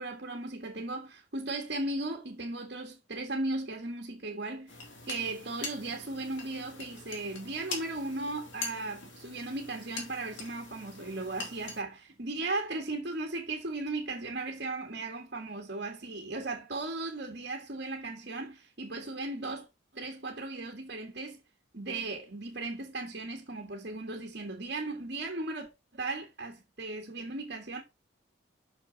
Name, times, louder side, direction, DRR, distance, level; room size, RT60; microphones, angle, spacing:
voice 1, 0.0-4.7 5.0-19.7 19.9-21.4 21.7-27.8, right 2 dB, 55° right, 1.6 m, -36 dB
sound 1, 4.7-11.8, left 3 dB, 70° left, 2.6 m, -43 dB
6.4 x 5.9 x 3.9 m
head